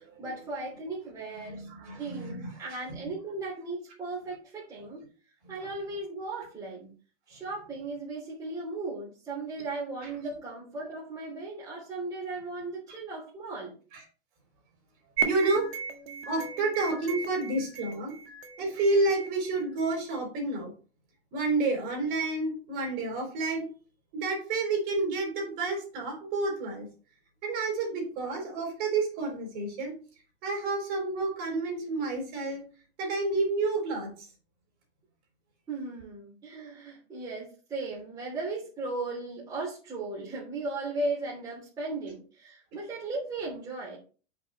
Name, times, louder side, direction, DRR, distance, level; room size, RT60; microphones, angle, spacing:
voice 1, 0.0-1.7 2.0-5.0 5.5-6.9 7.3-13.8 35.7-44.0, right 2 dB, 10° right, -7 dB, 2.9 m, -36 dB
voice 2, 1.4-2.5 2.9-3.0 13.9-14.0 15.2-15.7 16.3-18.1 18.6-20.7 21.3-23.7 24.1-26.9 27.4-30.0 30.4-32.6 33.0-34.1, right 3 dB, 30° right, 1 dB, 4.0 m, -29 dB
sound 1, 15.2-20.2, right 6 dB, 70° right, 1.7 m, -36 dB
8.5 x 6.0 x 4.1 m, 0.38 s
supercardioid pair, 170°, 32 cm